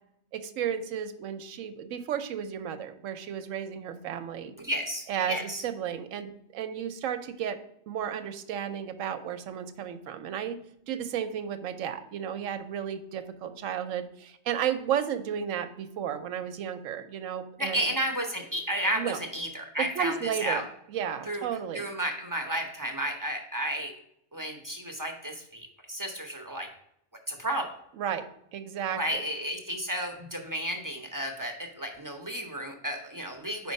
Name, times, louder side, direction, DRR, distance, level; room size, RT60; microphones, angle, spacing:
voice 1, 0.3-4.5 5.1-5.4 5.6-7.6 7.9-10.6 10.9-17.8 19.0-19.2 20.0-20.6 20.9-21.9 28.0-29.2, right 9 dB, 90° right, 9 dB, 1.0 m, -33 dB
voice 2, 4.6-5.6 17.6-20.6 21.3-23.9 24.3-26.7 27.3-27.8 28.9-33.7, equal, 20° right, 2 dB, 0.6 m, -32 dB
5.0 x 4.5 x 5.2 m, 0.73 s
omnidirectional pair, 1.3 m